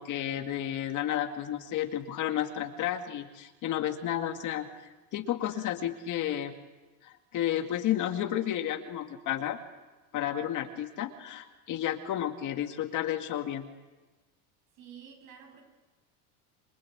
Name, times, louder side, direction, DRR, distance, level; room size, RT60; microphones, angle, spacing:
voice 1, 0.0-4.7 5.1-6.5 7.0-9.6 10.1-13.7, left 11 dB, 45° left, 6 dB, 2.2 m, -32 dB
voice 2, 14.8-15.6, right 8 dB, 50° right, 4 dB, 7.8 m, -50 dB
27.5 x 24.5 x 8.7 m, 1.2 s
cardioid pair, 150°, 44 cm